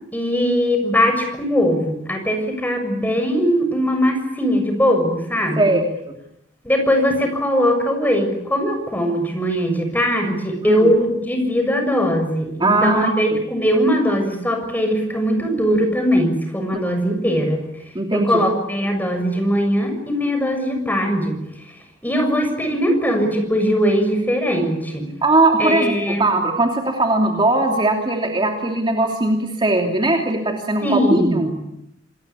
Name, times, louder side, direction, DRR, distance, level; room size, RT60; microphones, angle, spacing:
voice 1, 0.1-5.7 6.6-17.7 18.1-21.4 22.0-25.1 25.6-26.3 30.8-31.6, equal, 10° left, 5 dB, 6.8 m, -20 dB
voice 2, 12.6-13.1 16.7-16.8 17.9-18.3 25.2-31.5, right 2 dB, 25° right, 2 dB, 2.9 m, -19 dB
27.5 x 21.0 x 8.5 m, 0.81 s
head